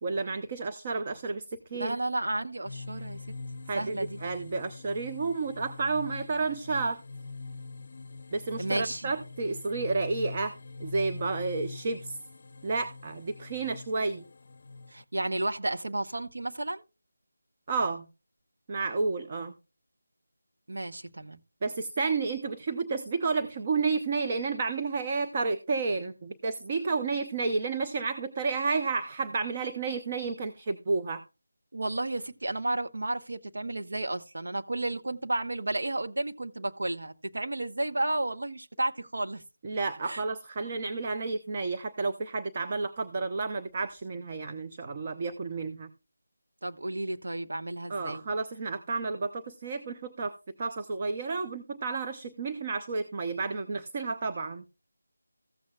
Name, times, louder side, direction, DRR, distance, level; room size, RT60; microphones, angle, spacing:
voice 1, 0.0-2.0 3.7-7.0 8.3-10.5 10.8-12.2 12.6-14.2 17.7-18.1 18.7-19.6 21.6-31.2 39.6-45.9 47.9-54.6, right 4 dB, 30° right, 0.7 m, -31 dB
voice 2, 1.7-3.2 3.7-4.2 8.6-9.1 14.9-16.8 20.7-21.4 31.7-39.4 40.1-40.2 46.6-48.2, right 2 dB, 70° right, 1.0 m, -32 dB
sound 1, 2.6-15.0, left 3 dB, 45° left, 0.6 m, -43 dB
15.0 x 8.5 x 2.3 m
figure-of-eight pair, 170°, 0 cm